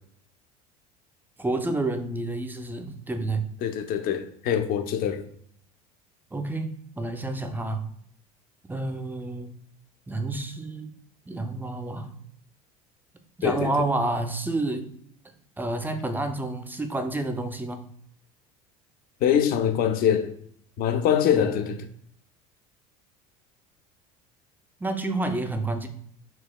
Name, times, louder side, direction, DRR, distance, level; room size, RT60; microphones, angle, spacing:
voice 1, 1.4-3.5 6.3-7.8 8.7-9.5 10.1-10.9 11.3-12.1 13.4-14.9 15.6-17.9 21.3-21.7 24.8-25.9, right 2 dB, 10° right, 0.4 m, -29 dB
voice 2, 3.6-5.3 13.4-13.7 19.2-20.3 20.8-21.9, left 9 dB, 50° left, 0.5 m, -24 dB
4.0 x 2.2 x 2.2 m
hypercardioid pair, 80°, 19 cm